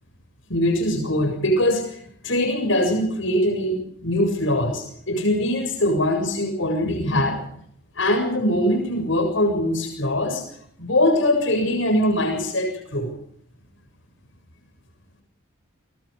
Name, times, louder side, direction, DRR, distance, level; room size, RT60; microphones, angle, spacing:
voice 1, 0.5-7.4 8.0-10.4 10.8-13.1, left 1 dB, 60° left, 4 dB, 7.2 m, -22 dB
27.0 x 24.0 x 5.2 m, 0.68 s
head